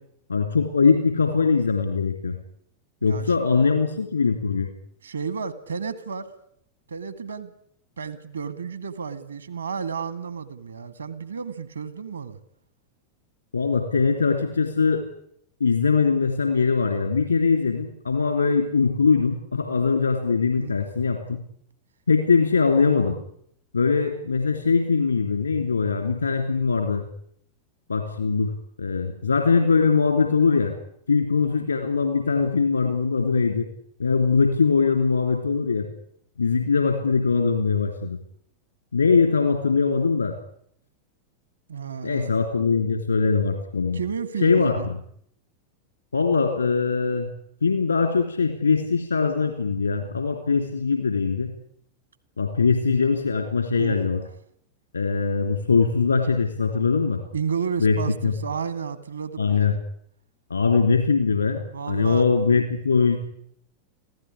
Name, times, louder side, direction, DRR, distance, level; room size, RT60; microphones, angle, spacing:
voice 1, 0.3-2.4 3.0-4.7 13.5-15.1 15.6-21.4 22.1-23.2 23.7-27.0 27.9-28.5 28.8-30.7 31.1-33.7 34.0-35.9 36.4-38.2 38.9-40.4 42.0-44.0 44.4-45.0 46.1-47.3 47.6-51.5 52.4-54.2 54.9-57.2 57.8-58.3 59.4-59.8 60.5-61.6 61.9-63.2, left 4 dB, 80° left, 5 dB, 3.0 m, -21 dB
voice 2, 5.0-6.3 6.9-7.5 8.0-12.4 20.6-20.7 41.7-42.3 43.9-44.9 53.8-54.1 57.3-59.7 61.7-62.2, right 6 dB, 70° right, 13 dB, 2.1 m, -32 dB
26.0 x 16.0 x 9.9 m, 0.70 s
figure-of-eight pair, 90°, 0 cm